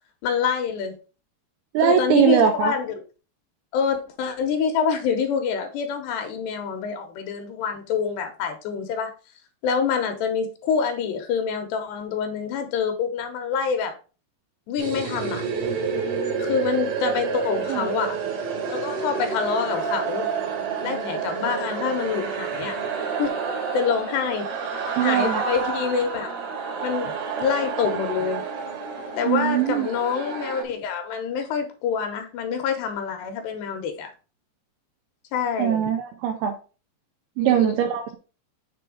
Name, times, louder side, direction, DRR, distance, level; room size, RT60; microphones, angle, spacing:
voice 1, 0.2-1.0 1.8-2.9 3.7-9.1 9.6-13.9 14.7-15.4 16.4-18.2 18.7-20.3 20.8-22.8 23.2-23.4 23.7-24.5 25.0-26.3 26.8-27.1 27.4-28.4 29.2-34.1 35.3-35.9 37.4-37.8, left 6 dB, 80° left, 6 dB, 2.8 m, -26 dB
voice 2, 1.7-2.7 17.7-17.9 25.0-25.4 29.3-29.9 35.6-36.5 37.4-38.2, right 9 dB, 80° right, 3 dB, 2.4 m, -21 dB
sound 1, 14.8-30.6, right 5 dB, 65° right, 3.1 m, -29 dB
6.9 x 3.2 x 4.8 m, 0.34 s
omnidirectional pair, 5.0 m